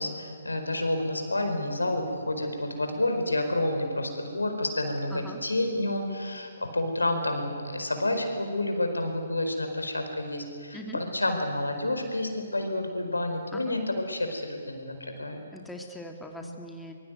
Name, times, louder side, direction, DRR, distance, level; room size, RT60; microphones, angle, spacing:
voice 1, 0.0-15.4 16.4-16.5, left 1 dB, 85° left, 6 dB, 4.7 m, -29 dB
voice 2, 15.5-16.9, left 1 dB, 5° left, 2 dB, 2.2 m, -41 dB
24.0 x 23.5 x 9.3 m, 2.2 s
figure-of-eight pair, 135°, 0 cm